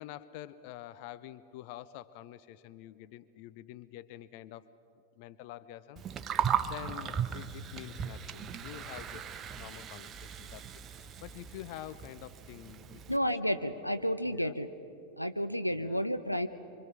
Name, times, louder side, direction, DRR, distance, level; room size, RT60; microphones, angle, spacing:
voice 1, 0.0-4.7 5.2-6.0 6.3-13.0 14.3-14.6 15.7-16.1, left 13 dB, 45° left, 16 dB, 0.6 m, -47 dB
Gurgling, 6.0-13.2, right 8 dB, 25° right, 0.9 m, -37 dB
voice 2, 13.1-14.7 15.2-16.5, equal, 90° left, 10 dB, 0.8 m, -31 dB
25.5 x 24.5 x 6.0 m, 2.7 s
figure-of-eight pair, 90°, 0 cm